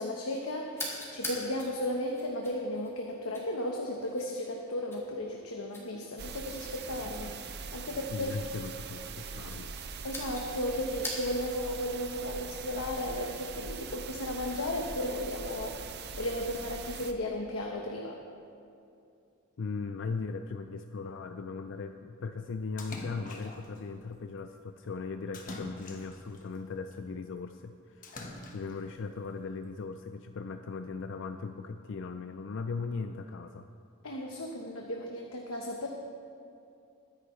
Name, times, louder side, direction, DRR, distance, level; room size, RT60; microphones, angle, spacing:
voice 1, 0.0-8.4 10.0-18.2 34.0-35.9, left 1 dB, 80° left, 0 dB, 1.1 m, -35 dB
sound 1, 0.7-11.6, left 1 dB, 10° left, 2.5 m, -45 dB
sound 2, 6.2-17.1, right 5 dB, 50° right, 0.6 m, -42 dB
voice 2, 8.1-9.7 19.6-28.2 28.5-33.7, left 4 dB, 60° left, 7 dB, 0.4 m, -38 dB
Splash splatter, 22.8-23.8 25.3-26.4 28.0-28.9, left 2 dB, 40° left, 1.2 m, -44 dB
22.0 x 10.0 x 3.2 m, 2.6 s
head